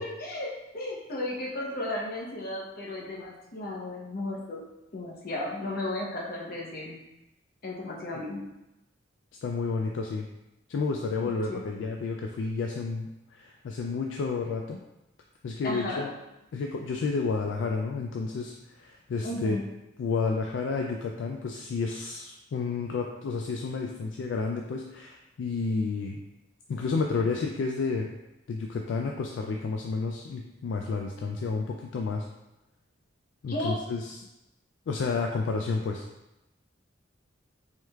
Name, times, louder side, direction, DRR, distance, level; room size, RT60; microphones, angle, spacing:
voice 1, 0.0-7.0 7.6-8.4 11.5-11.6 15.6-16.0 19.2-19.6 33.5-33.8, left 1 dB, 50° left, -3 dB, 0.8 m, -34 dB
voice 2, 9.4-10.3 10.7-14.8 15.4-16.1 16.5-19.6 20.0-26.2 26.7-28.1 28.5-32.3 33.4-34.3 34.9-36.1, left 4 dB, 70° left, 2 dB, 0.3 m, -31 dB
4.6 x 3.2 x 2.3 m, 0.93 s
head